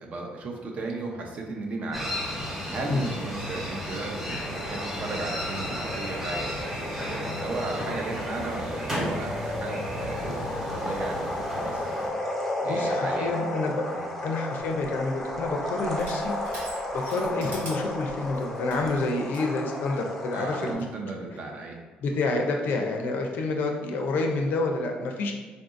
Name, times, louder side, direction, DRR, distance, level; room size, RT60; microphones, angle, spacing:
voice 1, 0.0-11.9 12.6-13.3 13.9-14.1 20.3-21.7, right 3 dB, 45° right, 1 dB, 0.6 m, -36 dB
sound 1, 1.9-12.1, equal, 15° right, 0.8 m, -33 dB
sound 2, 4.4-20.7, left 1 dB, 5° left, 0.5 m, -33 dB
voice 2, 12.6-13.8 14.2-16.3 16.9-20.9 22.0-25.3, left 3 dB, 70° left, 2 dB, 0.5 m, -28 dB
Crushing, 14.7-19.5, right 1 dB, 85° right, 1.1 m, -44 dB
3.7 x 2.6 x 2.5 m, 1.4 s
cardioid pair, 115°, 3 cm